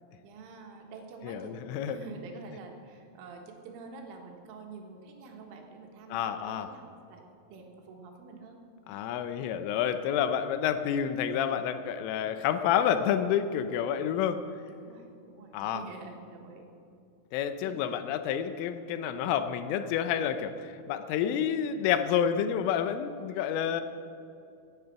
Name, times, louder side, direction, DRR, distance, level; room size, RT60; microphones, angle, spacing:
voice 1, 0.2-1.6 1.8-8.6 14.7-16.6 17.6-17.8, right 4 dB, 75° right, 2 dB, 3.9 m, -47 dB
voice 2, 1.2-2.0 6.1-6.7 8.9-14.4 15.5-15.8 17.3-23.8, left 9 dB, 85° left, 10 dB, 3.1 m, -29 dB
16.5 x 9.4 x 5.8 m, 2.5 s
omnidirectional pair, 5.9 m